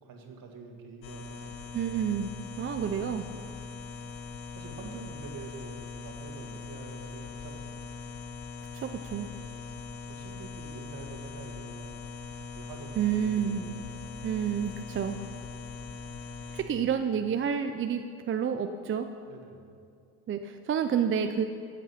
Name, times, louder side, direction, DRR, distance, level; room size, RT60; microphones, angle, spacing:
voice 1, 0.0-1.9 3.3-3.6 4.2-7.9 9.3-12.1 12.5-14.1 19.3-19.6, right 4 dB, 55° right, 2 dB, 2.0 m, -47 dB
sound 1, 1.0-16.6, left 4 dB, 65° left, 1.4 m, -41 dB
voice 2, 1.7-2.3 2.6-3.2 8.7-9.3 13.0-13.6 14.2-15.2 16.5-19.1 20.3-21.4, right 8 dB, 30° right, 7 dB, 0.5 m, -29 dB
16.0 x 7.5 x 5.8 m, 2.4 s
supercardioid pair, 100°, 41 cm